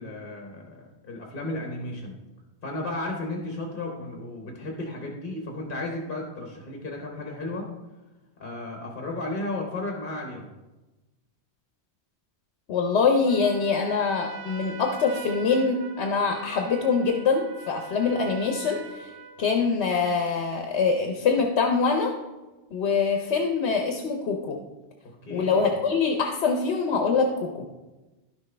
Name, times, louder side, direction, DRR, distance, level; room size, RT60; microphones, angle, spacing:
voice 1, 0.0-2.2 2.6-7.7 8.4-10.5 25.0-25.7, left 2 dB, 55° left, 1 dB, 1.2 m, -34 dB
voice 2, 12.7-19.1 19.4-22.1 22.7-24.6 25.3-27.3 27.5-27.7, left 5 dB, 75° left, 3 dB, 1.0 m, -24 dB
Trumpet, 13.2-19.7, right 5 dB, 75° right, 0.9 m, -43 dB
11.5 x 6.1 x 3.3 m, 1.1 s
omnidirectional pair, 1.1 m